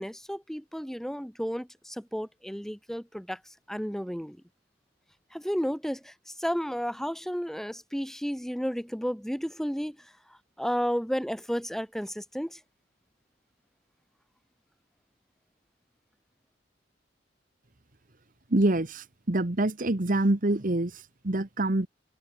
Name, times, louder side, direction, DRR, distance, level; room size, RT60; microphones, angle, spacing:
voice 1, 0.0-3.4 3.7-4.4 5.3-10.1 10.6-12.6, equal, ahead, 3.3 m, -32 dB
voice 2, 18.5-21.9, right 1 dB, 45° right, 1.3 m, -26 dB
head